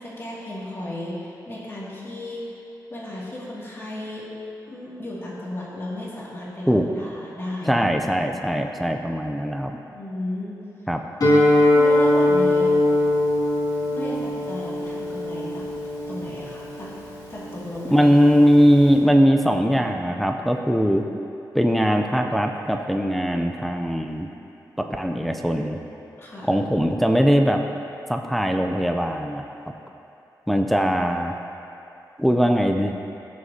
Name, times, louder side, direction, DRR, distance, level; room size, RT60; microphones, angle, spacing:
voice 1, 0.0-2.6 2.9-4.3 4.7-7.9 8.5-8.6 9.9-10.9 11.7-12.7 13.9-15.7 16.1-16.9 17.3-18.3 26.2-26.5, left 1 dB, 35° left, -7 dB, 2.2 m, -34 dB
voice 2, 7.7-9.7 10.9-11.0 17.9-21.0 21.5-24.3 24.8-25.8 26.5-27.6 28.1-29.4 30.5-31.4 32.2-32.9, equal, ahead, 4 dB, 0.4 m, -20 dB
Guitar, 11.2-19.0, left 1 dB, 55° left, 2.2 m, -22 dB
15.5 x 6.4 x 2.8 m, 2.8 s
wide cardioid pair, 130°, 7 cm